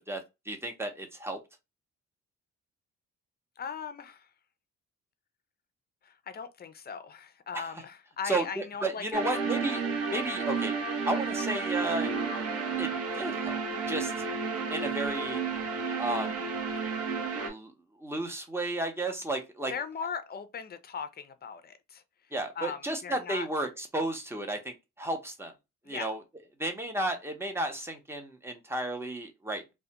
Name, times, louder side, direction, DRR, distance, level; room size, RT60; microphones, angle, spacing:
voice 1, 0.1-1.4 7.5-7.7 8.2-9.8 10.1-10.8 11.0-12.1 12.8-13.6 13.9-14.1 14.7-15.4 16.0-16.5 17.4-17.7 18.0-19.7 22.3-25.5 25.9-26.2 26.6-29.7, right 2 dB, 10° right, 0.7 m, -33 dB
voice 2, 3.6-4.3 6.0-9.2 19.7-22.0 22.6-23.5 25.8-26.1, left 6 dB, 35° left, 0.5 m, -39 dB
sound 1, 9.1-17.5, right 5 dB, 55° right, 0.8 m, -32 dB
2.3 x 2.2 x 2.8 m
cardioid pair, 90°, 30 cm